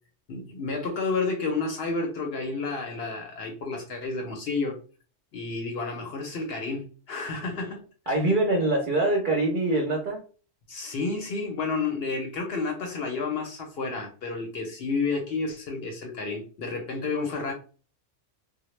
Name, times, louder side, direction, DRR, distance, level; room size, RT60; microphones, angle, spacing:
voice 1, 0.3-4.8 5.3-7.8 10.7-17.5, left 4 dB, 60° left, 0.7 m, -30 dB
voice 2, 8.1-10.2, right 2 dB, 55° right, 0.6 m, -24 dB
2.1 x 2.0 x 3.0 m
omnidirectional pair, 1.3 m